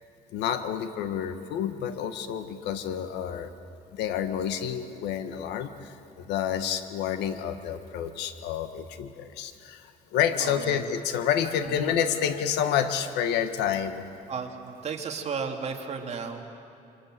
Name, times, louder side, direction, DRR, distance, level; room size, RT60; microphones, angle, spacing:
voice 1, 0.3-3.5 3.9-14.0, left 9 dB, 85° left, 9 dB, 1.6 m, -29 dB
voice 2, 10.4-10.8 11.6-11.9 14.3-16.4, right 6 dB, 40° right, 3 dB, 2.7 m, -34 dB
28.0 x 25.0 x 7.8 m, 2.8 s
cardioid pair, 110°, 17 cm